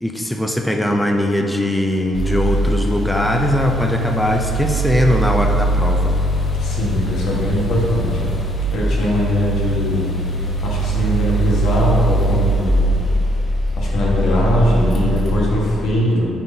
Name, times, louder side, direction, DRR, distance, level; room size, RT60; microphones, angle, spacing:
voice 1, 0.0-6.1, left 1 dB, 5° left, 2 dB, 0.5 m, -20 dB
sound 1, 2.1-15.9, right 1 dB, 35° left, 1.0 m, -21 dB
voice 2, 6.6-8.3 8.7-10.1 10.6-12.9 13.8-16.3, equal, 75° left, -4 dB, 1.4 m, -20 dB
8.7 x 4.3 x 2.7 m, 2.7 s
cardioid pair, 90°, 0 cm